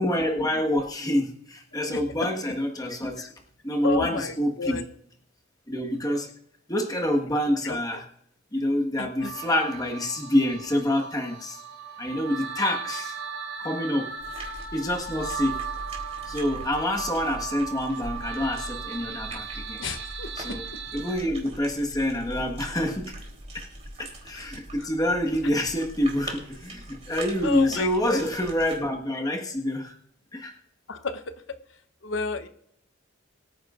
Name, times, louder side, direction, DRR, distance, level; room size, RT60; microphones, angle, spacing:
voice 1, 0.0-3.3 3.6-4.9 5.7-6.3 6.7-8.1 8.5-11.6 12.0-13.2 13.6-14.1 14.7-15.6 16.3-19.8 20.3-20.7 20.9-23.2 23.5-23.7 24.0-30.0 30.3-30.5, left 1 dB, 20° left, 0 dB, 1.6 m, -27 dB
voice 2, 3.8-4.3 4.6-4.8 9.0-9.3 19.8-20.3 27.4-28.2 30.9-31.2 32.0-32.5, left 4 dB, 65° left, 9 dB, 1.0 m, -30 dB
sound 1, 9.2-21.2, right 6 dB, 65° right, 4.8 m, -37 dB
sound 2, 14.2-28.8, right 1 dB, 35° right, 3.5 m, -41 dB
23.5 x 9.5 x 2.6 m, 0.71 s
head